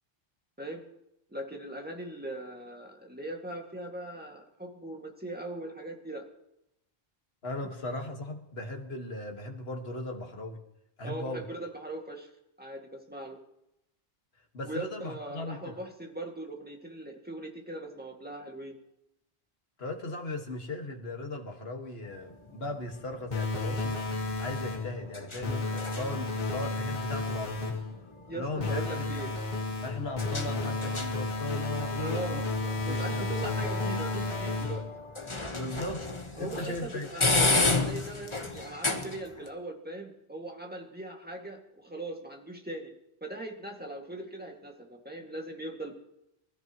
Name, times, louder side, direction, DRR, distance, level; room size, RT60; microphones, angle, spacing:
voice 1, 1.3-6.2 11.0-12.3 12.6-13.4 14.6-18.8 28.3-29.3 32.0-34.8 36.4-42.9 43.2-45.9, right 1 dB, 10° right, 1 dB, 2.0 m, -40 dB
voice 2, 7.4-10.6 11.0-11.5 14.5-15.8 19.8-24.0 24.4-27.8 28.3-29.0 29.8-32.4 32.9-33.3 35.5-36.1 36.4-37.1, left 2 dB, 70° left, 3 dB, 2.0 m, -37 dB
sound 1, 22.0-39.5, left 3 dB, 30° left, 1.3 m, -34 dB
sound 2, 23.3-25.0 25.4-27.9 28.6-35.0, left 2 dB, 45° left, 1.6 m, -32 dB
24.0 x 13.5 x 3.0 m, 0.83 s
omnidirectional pair, 1.1 m